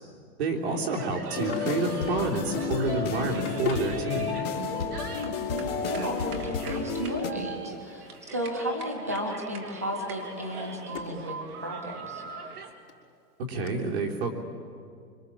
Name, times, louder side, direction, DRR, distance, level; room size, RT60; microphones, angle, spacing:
voice 1, 0.4-4.4 13.5-14.3, right 3 dB, 40° right, 0 dB, 3.5 m, -29 dB
sound 1, 0.7-12.7, right 4 dB, 65° right, 3.2 m, -41 dB
Drawer open or close, 1.1-2.3 3.0-4.0 5.0-5.1 6.9-8.4 8.7-9.1 9.6-11.3 11.7-11.8 12.6-12.7 12.9-13.0 13.7-13.8, left 5 dB, 45° left, 4.3 m, -40 dB
sound 2, 1.3-7.3, left 5 dB, 25° left, 2.8 m, -32 dB
voice 2, 5.1-12.2, equal, 10° right, 3 dB, 0.5 m, -34 dB
26.0 x 25.5 x 7.5 m, 2.3 s
hypercardioid pair, 175°, 49 cm